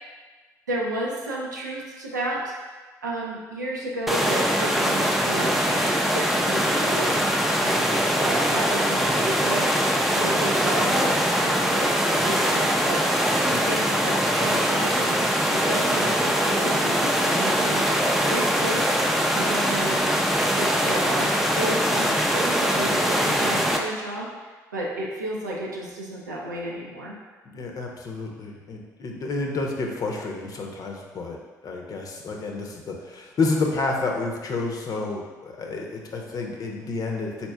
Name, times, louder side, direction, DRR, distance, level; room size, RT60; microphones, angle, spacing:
voice 1, 0.7-2.5 3.0-7.3 7.6-7.9 8.2-9.7 10.1-13.0 13.5-15.2 15.5-18.9 19.3-20.0 20.6-27.2, right 1 dB, 85° right, -4 dB, 0.6 m, -32 dB
sound 1, 4.1-23.8, equal, ahead, 0.5 m, -22 dB
voice 2, 27.4-31.4 31.6-37.5, left 3 dB, 40° left, 1 dB, 0.7 m, -29 dB
4.3 x 4.2 x 2.2 m, 1.3 s
figure-of-eight pair, 50°, 9 cm